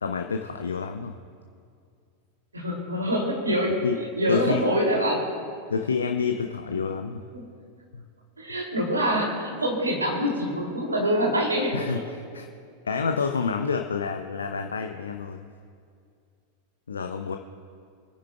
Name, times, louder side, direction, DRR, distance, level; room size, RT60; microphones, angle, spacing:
voice 1, 0.0-1.1 3.8-3.9 4.3-4.6 5.7-7.2 7.9-8.0 11.7-12.0 12.3-12.5 12.9-15.5 16.9-17.4, left 5 dB, 70° left, 5 dB, 0.5 m, -28 dB
voice 2, 2.5-5.3 7.3-7.5 8.4-11.8, equal, 80° right, -1 dB, 2.7 m, -25 dB
28.0 x 9.7 x 2.3 m, 2.3 s
figure-of-eight pair, 90°, 0 cm